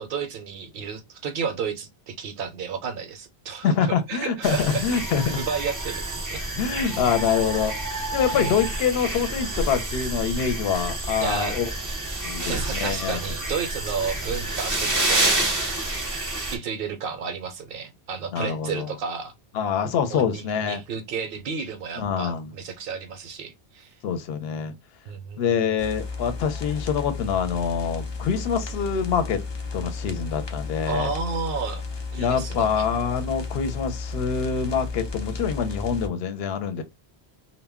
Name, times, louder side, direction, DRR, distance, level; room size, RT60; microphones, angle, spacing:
voice 1, 0.0-4.8 5.2-6.5 8.4-8.5 11.2-11.6 12.5-15.6 16.4-19.3 20.1-23.9 25.1-25.7 30.9-31.8 32.1-32.9, right 6 dB, 65° right, 0.7 m, -32 dB
voice 2, 3.6-5.4 6.6-7.7 8.1-11.7 12.2-13.2 18.3-18.9 19.5-20.8 22.0-22.5 24.0-24.7 25.4-29.4 29.7-31.1 32.2-36.8, left 7 dB, 70° left, 0.8 m, -25 dB
sound 1, 4.4-16.6, right 2 dB, 25° right, 0.5 m, -28 dB
sound 2, 25.8-36.1, left 4 dB, 45° left, 0.3 m, -33 dB
2.1 x 2.1 x 3.4 m
omnidirectional pair, 1.1 m